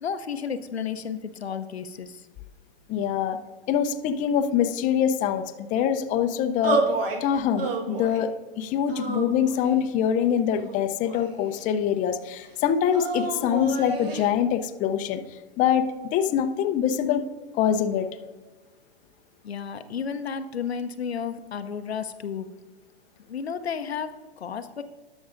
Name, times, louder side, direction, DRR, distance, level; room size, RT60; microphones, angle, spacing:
voice 1, 0.0-2.3 19.4-22.5 23.3-24.8, left 7 dB, 90° left, 9 dB, 0.7 m, -32 dB
voice 2, 2.9-3.4 3.7-6.8 7.2-8.3 8.6-15.2 15.6-17.3 17.6-18.1, left 8 dB, 25° left, 7 dB, 0.6 m, -24 dB
sound 1, 6.6-7.2 7.6-8.3 8.9-9.8 10.5-11.5 12.9-14.3, right 3 dB, 65° right, 1.6 m, -29 dB
18.5 x 6.2 x 2.5 m, 1.2 s
hypercardioid pair, 115°, 31 cm